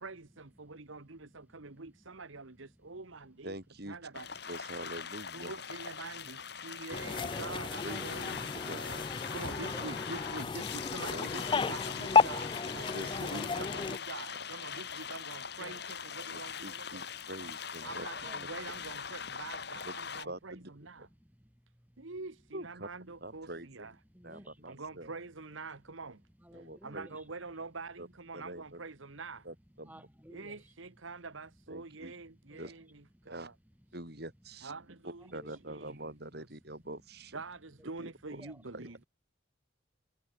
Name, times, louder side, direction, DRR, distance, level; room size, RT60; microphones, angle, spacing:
voice 1, 0.0-3.5 3.9-4.3 5.3-8.8 9.3-12.9 13.2-17.1 17.4-17.5 17.8-21.1 22.0-23.9 24.6-26.2 26.8-29.5 30.3-33.5 34.6-35.4 35.7-36.0 36.4-36.5 37.3-39.0, right 3 dB, 75° right, 1.4 m, -46 dB
voice 2, 1.0-2.2 6.6-6.8 9.2-9.9 13.1-13.6 16.4-16.5 17.1-17.3 17.8-18.5 21.0-22.1 24.1-24.8 26.4-27.3 29.8-30.7 32.1-32.7 33.1-33.3 35.3-35.9 38.3-39.0, equal, 10° right, 5.2 m, -56 dB
voice 3, 3.4-4.0 4.5-5.5 7.2-7.6 7.8-8.3 8.5-9.1 11.0-11.3 11.6-11.8 12.9-13.4 16.3-18.1 19.8-19.9 20.2-20.7 22.5-22.9 23.2-24.0 24.2-25.1 26.5-27.1 28.0-28.1 28.3-28.8 29.4-30.1 31.7-32.1 32.6-32.7 33.3-33.5 33.9-34.7 35.0-37.4 38.0-38.5 38.7-38.9, right 1 dB, 50° right, 6.4 m, -45 dB
sound 1, 4.1-20.3, left 7 dB, 55° left, 2.8 m, -41 dB
Supermarket Self-Service Checkout, 6.9-14.0, left 5 dB, 25° left, 0.3 m, -32 dB
head